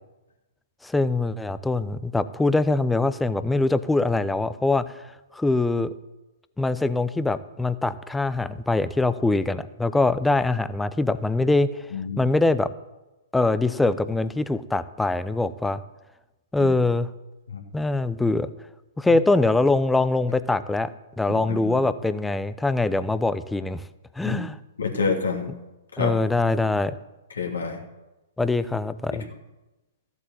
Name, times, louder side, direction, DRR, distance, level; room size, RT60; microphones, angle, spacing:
voice 1, 0.8-5.0 5.3-5.9 6.6-11.7 12.2-12.7 13.3-15.8 16.5-17.1 17.7-18.5 19.0-20.9 21.2-23.8 24.2-24.6 26.0-26.9 28.4-29.2, left 2 dB, 5° left, 14 dB, 0.7 m, -23 dB
voice 2, 11.9-12.2 16.6-16.7 17.5-17.6 21.3-21.8 24.2-24.4 24.8-25.5 25.9-26.1 27.3-27.8, left 5 dB, 70° left, 1 dB, 2.9 m, -28 dB
14.5 x 8.1 x 7.6 m, 1.0 s
figure-of-eight pair, 115°, 0 cm